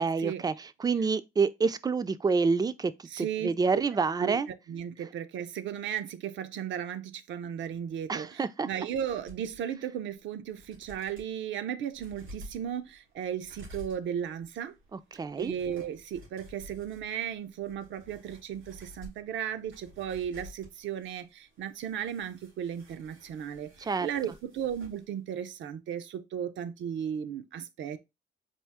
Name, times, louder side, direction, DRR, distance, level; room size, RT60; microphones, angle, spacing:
voice 1, 0.0-4.5 8.1-8.7 14.9-15.5 23.8-24.1, right 4 dB, 20° right, 0.3 m, -28 dB
voice 2, 3.1-3.5 4.2-4.4 4.7-14.7 15.4-28.0, right 9 dB, 70° right, 0.5 m, -35 dB
sound 1, 9.0-9.6 10.1-10.2 10.5-11.3 11.9-25.0 25.3-25.4, equal, 90° right, 2.7 m, -52 dB
4.4 x 2.4 x 3.5 m
cardioid pair, 90°, 20 cm